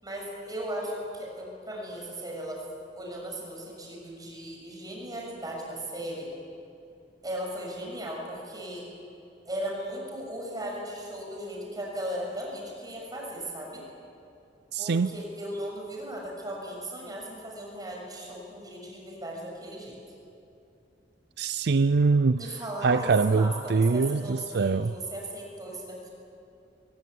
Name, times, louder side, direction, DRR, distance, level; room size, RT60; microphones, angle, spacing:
voice 1, 0.0-2.7 2.9-6.3 7.2-8.9 9.5-13.8 14.8-20.0 22.4-26.1, right 1 dB, 20° right, -1 dB, 6.7 m, -37 dB
voice 2, 14.7-15.1 21.4-22.4 22.8-24.9, right 4 dB, 65° right, 13 dB, 0.5 m, -23 dB
21.0 x 21.0 x 9.5 m, 2.7 s
head